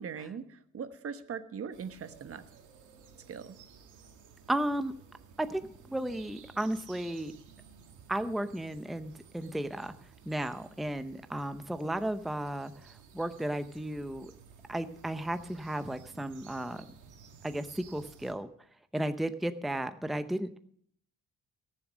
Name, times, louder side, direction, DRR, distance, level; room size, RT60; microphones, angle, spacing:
voice 1, 0.0-2.4 3.3-3.6, right 6 dB, 50° right, 11 dB, 1.1 m, -40 dB
sound 1, 1.7-18.3, right 6 dB, 85° right, 2.1 m, -55 dB
voice 2, 4.5-4.9 5.4-7.3 8.1-9.9 10.2-14.3 14.7-16.8 17.4-18.5 18.9-20.6, right 1 dB, ahead, 10 dB, 0.7 m, -34 dB
17.5 x 7.4 x 6.2 m, 0.64 s
cardioid pair, 90°, 30 cm